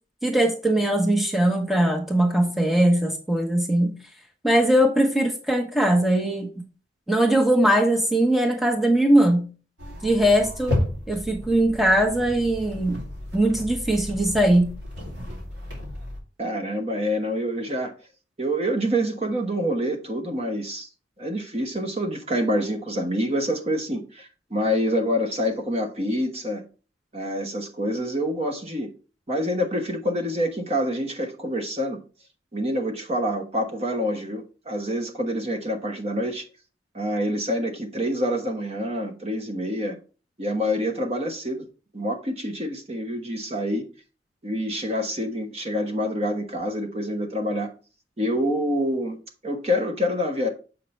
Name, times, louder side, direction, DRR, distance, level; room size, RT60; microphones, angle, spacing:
voice 1, 0.2-3.9 4.4-6.5 7.1-9.5 10.0-10.8 11.1-13.0 13.3-14.7, right 1 dB, ahead, 1.1 m, -20 dB
sound 1, 9.8-16.2, left 1 dB, 70° right, 3.1 m, -33 dB
voice 2, 16.4-17.9 18.4-20.9 21.2-26.6 27.1-28.9 29.3-32.0 32.5-36.4 36.9-40.0 40.4-41.6 41.9-43.8 44.4-47.7 48.2-49.2 49.4-50.5, equal, 35° right, 1.1 m, -26 dB
7.4 x 5.7 x 3.2 m
head